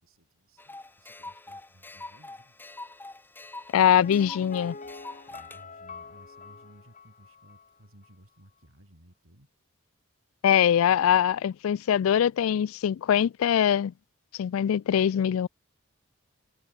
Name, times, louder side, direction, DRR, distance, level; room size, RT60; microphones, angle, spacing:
voice 1, 0.0-2.7 5.3-9.5, right 1 dB, 75° right, 6.0 m, -57 dB
sound 1, 0.6-5.6, left 2 dB, 10° left, 2.0 m, -44 dB
voice 2, 3.7-4.7 10.4-13.9 14.4-15.5, left 9 dB, 75° left, 0.3 m, -22 dB
Piano, 4.0-7.8 8.0-8.1, left 4 dB, 35° left, 1.9 m, -45 dB
head